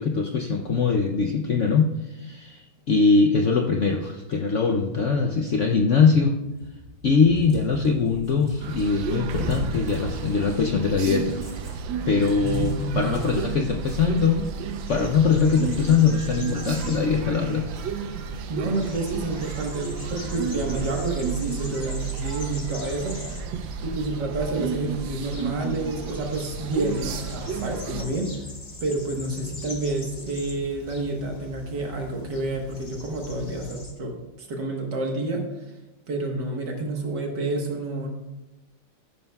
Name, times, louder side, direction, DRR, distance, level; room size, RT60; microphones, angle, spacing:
voice 1, 0.0-6.4 7.0-11.4 12.1-14.5 14.9-17.7, left 5 dB, 65° left, 2 dB, 0.7 m, -22 dB
Cat, 6.4-10.7 11.2-17.4 17.8-19.6 20.0-21.1 21.4-21.6 22.1-23.7 24.3-25.5, right 1 dB, 30° right, 2.9 m, -39 dB
sound 1, 8.6-28.0, right 7 dB, 90° right, 1.4 m, -33 dB
voice 2, 12.4-13.2 13.5-13.8 18.5-23.2 23.8-28.4 28.8-35.4 36.1-38.1, right 2 dB, 65° right, 1 dB, 1.9 m, -29 dB
sound 2, 14.9-33.9, left 2 dB, 25° left, 1.1 m, -42 dB
14.0 x 11.0 x 2.3 m, 1.1 s
omnidirectional pair, 2.0 m